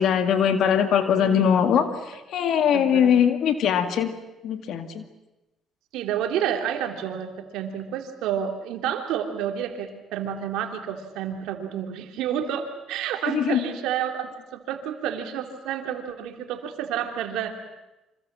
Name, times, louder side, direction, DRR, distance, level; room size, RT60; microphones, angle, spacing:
voice 1, 0.0-4.1 4.4-5.0 13.3-13.6, left 8 dB, 70° left, 8 dB, 2.2 m, -21 dB
voice 2, 1.2-1.8 2.7-3.1 5.9-17.5, right 9 dB, 85° right, 5 dB, 3.1 m, -30 dB
27.0 x 25.5 x 7.5 m, 1.0 s
cardioid pair, 90°, 0 cm